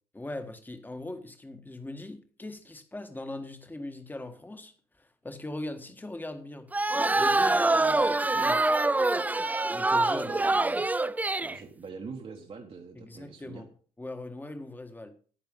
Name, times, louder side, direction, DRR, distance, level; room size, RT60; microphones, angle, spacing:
voice 1, 0.1-6.7 7.2-8.7 9.7-10.4 12.9-13.7 14.0-15.1, left 2 dB, 10° left, 1.7 m, -40 dB
sound 1, 6.7-11.6, right 2 dB, 10° right, 0.4 m, -25 dB
voice 2, 10.2-10.8 11.4-13.6, right 5 dB, 35° right, 1.6 m, -43 dB
10.5 x 8.9 x 5.5 m
cardioid pair, 110°, 17 cm